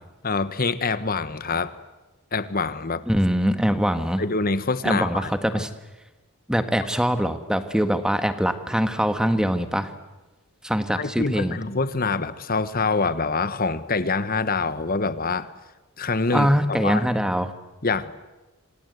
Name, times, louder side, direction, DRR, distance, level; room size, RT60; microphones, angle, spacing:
voice 1, 0.2-1.8 2.3-3.0 4.2-5.6 11.0-15.5 16.0-17.0 17.8-18.1, left 4 dB, 40° left, 13 dB, 1.2 m, -25 dB
voice 2, 3.1-4.2 4.8-5.7 6.5-9.9 10.6-11.6 16.3-17.5, equal, 5° right, 9 dB, 1.5 m, -23 dB
27.0 x 26.5 x 8.2 m, 1.1 s
head